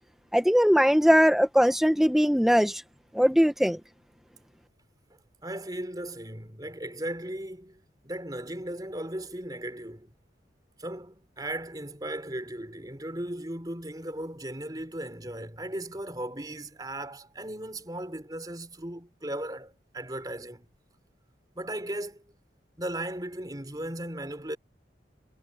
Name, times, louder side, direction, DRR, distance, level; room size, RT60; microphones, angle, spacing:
voice 1, 0.3-2.8 3.1-3.8, equal, ahead, 1.3 m, -20 dB
voice 2, 5.4-10.1 10.8-20.7 21.6-22.2 22.8-24.6, right 1 dB, 20° right, 4.0 m, -37 dB
head